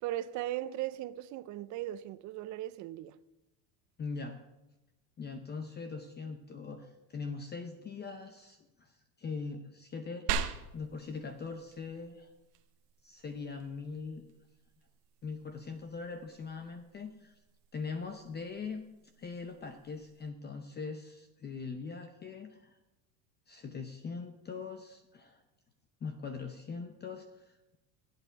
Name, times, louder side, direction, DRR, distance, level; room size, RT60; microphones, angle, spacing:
voice 1, 0.0-3.2, right 14 dB, 40° right, 0.5 m, -38 dB
voice 2, 4.0-4.4 5.2-10.3 10.7-12.3 13.0-14.2 15.2-17.4 17.7-18.8 19.2-22.8 23.5-25.4 26.0-27.8, left 4 dB, 20° left, 0.7 m, -41 dB
sound 1, 10.3-20.3, right 7 dB, 90° right, 1.2 m, -44 dB
15.0 x 8.4 x 4.6 m
supercardioid pair, 125°, 46 cm